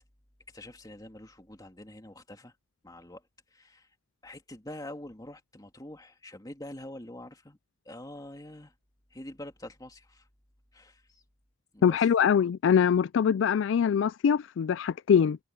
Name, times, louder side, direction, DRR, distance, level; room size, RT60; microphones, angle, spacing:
voice 1, 0.5-2.5 2.8-3.9 4.2-7.6 7.8-8.7 9.1-10.3 10.7-11.2 11.7-12.0, left 1 dB, 20° left, 2.5 m, -45 dB
voice 2, 11.8-15.4, left 7 dB, 65° left, 0.3 m, -23 dB
head